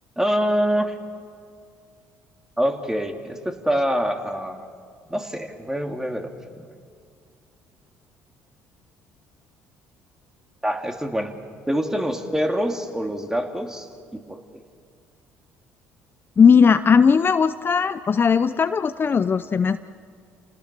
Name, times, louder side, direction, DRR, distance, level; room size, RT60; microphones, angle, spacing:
voice 1, 0.2-1.0 2.6-4.7 5.1-6.3 6.6-6.7 10.6-11.3 11.7-14.6, equal, 10° right, 4 dB, 2.5 m, -25 dB
voice 2, 16.4-19.8, left 6 dB, 35° left, 11 dB, 0.6 m, -17 dB
28.5 x 18.5 x 6.7 m, 2.2 s
supercardioid pair, 65°, 6 cm